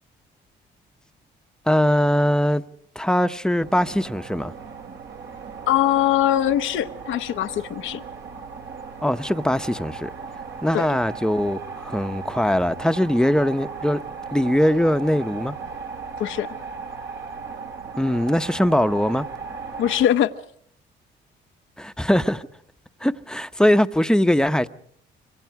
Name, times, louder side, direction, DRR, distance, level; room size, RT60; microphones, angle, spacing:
voice 1, 1.7-2.6 3.0-4.5 9.0-10.1 10.6-14.0 14.3-15.5 18.0-19.3 21.8-22.5 23.0-24.7, equal, 5° left, 0.9 m, -21 dB
sound 1, 3.6-20.1, right 5 dB, 65° right, 2.6 m, -37 dB
voice 2, 5.7-8.0 10.7-10.9 16.2-16.5 19.8-20.3, left 11 dB, 80° left, 0.9 m, -21 dB
27.0 x 24.5 x 4.8 m
cardioid pair, 90°, 20 cm